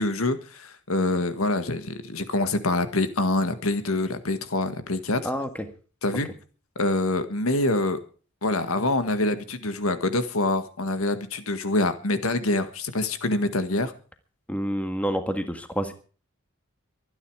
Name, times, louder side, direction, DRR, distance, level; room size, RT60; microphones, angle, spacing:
voice 1, 0.0-5.2 6.0-6.3 6.8-8.0 8.4-13.9, left 2 dB, 85° left, 10 dB, 1.8 m, -25 dB
voice 2, 14.5-15.9, equal, 5° left, 8 dB, 1.6 m, -28 dB
24.0 x 9.8 x 4.8 m, 0.39 s
head